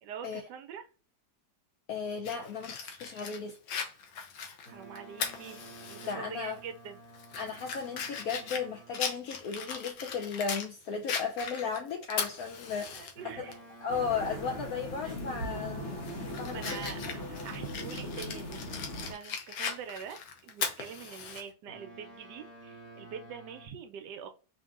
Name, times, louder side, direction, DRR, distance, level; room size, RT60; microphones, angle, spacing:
voice 1, 0.0-0.9 4.7-5.6 5.9-7.0 12.9-13.6 15.0-15.2 16.3-18.6 19.1-24.3, right 7 dB, 75° right, 1.1 m, -44 dB
voice 2, 1.9-3.6 6.1-6.6 7.4-13.1 13.4-13.5 13.8-16.0 16.4-16.7 17.0-17.1, left 5 dB, 70° left, 0.8 m, -35 dB
Fire, 2.2-6.1 6.5-6.6 7.1-10.7 11.1-13.1 13.5-13.6 15.1-15.4 15.8-21.4, left 6 dB, 90° left, 1.5 m, -38 dB
Boat Water vehicle, 4.6-9.2 13.1-17.7 21.7-23.7, right 2 dB, 25° left, 1.2 m, -52 dB
sound 1, 13.9-19.1, equal, 45° left, 1.2 m, -39 dB
5.0 x 2.7 x 2.4 m
omnidirectional pair, 2.0 m